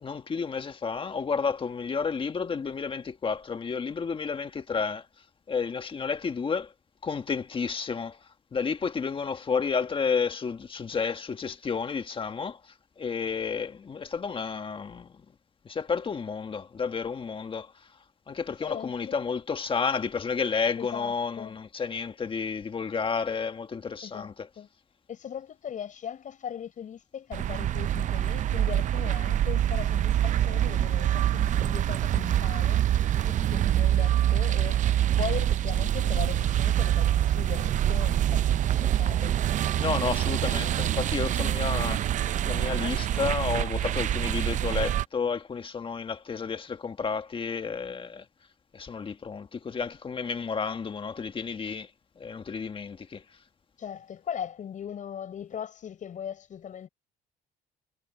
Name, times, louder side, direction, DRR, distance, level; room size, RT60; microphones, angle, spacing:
voice 1, 0.0-5.0 5.5-6.7 7.0-8.2 8.5-12.6 13.0-15.1 15.6-17.7 18.3-24.5 39.8-42.0 42.4-48.2 48.7-51.9 52.2-53.2, left 5 dB, 30° left, 1.6 m, -31 dB
voice 2, 18.6-19.4 20.8-21.6 24.0-24.7 25.1-32.8 33.1-34.8 35.2-39.4 53.8-56.9, left 8 dB, 50° left, 6.9 m, -39 dB
sound 1, 27.3-45.0, right 11 dB, 50° right, 0.5 m, -25 dB
cardioid pair, 110°, 17 cm